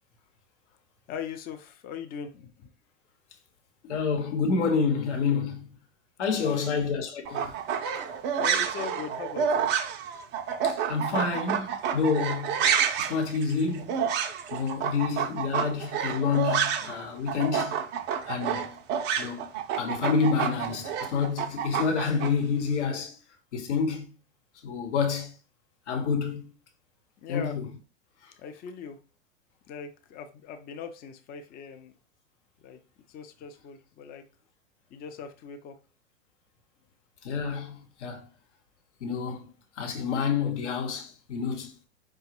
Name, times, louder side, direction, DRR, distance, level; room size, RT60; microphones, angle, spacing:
voice 1, 1.1-2.7 6.3-6.8 8.4-9.7 14.6-15.0 27.2-27.6 28.4-29.0 29.7-31.9 32.6-32.8 33.1-34.2 34.9-35.8, left 7 dB, 25° left, 0.5 m, -40 dB
voice 2, 3.8-5.7 6.2-7.5 10.6-11.7 11.9-12.6 13.0-13.9 14.5-17.8 18.3-18.7 19.2-19.4 19.8-23.1 23.5-24.1 24.6-25.3 25.9-26.4 27.3-27.7 37.2-38.2 39.0-39.5 39.8-41.7, left 5 dB, 70° left, 1.1 m, -28 dB
sound 1, 7.2-17.0 17.3-22.3, right 8 dB, 30° right, 0.4 m, -29 dB
5.0 x 2.2 x 2.9 m
figure-of-eight pair, 90°, 37 cm